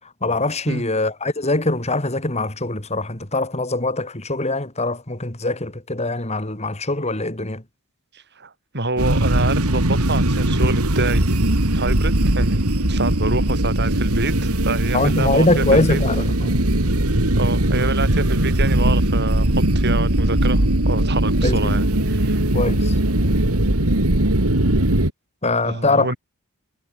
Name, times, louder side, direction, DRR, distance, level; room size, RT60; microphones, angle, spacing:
voice 1, 0.2-7.6 14.9-16.6 21.4-21.8 22.5-22.9 25.4-26.1, left 2 dB, 30° left, 3.2 m, -22 dB
voice 2, 8.1-11.3 11.7-16.0 17.4-22.4 25.6-26.2, right 3 dB, 50° right, 7.2 m, -27 dB
sound 1, 9.0-25.1, right 1 dB, 90° right, 3.3 m, -19 dB
head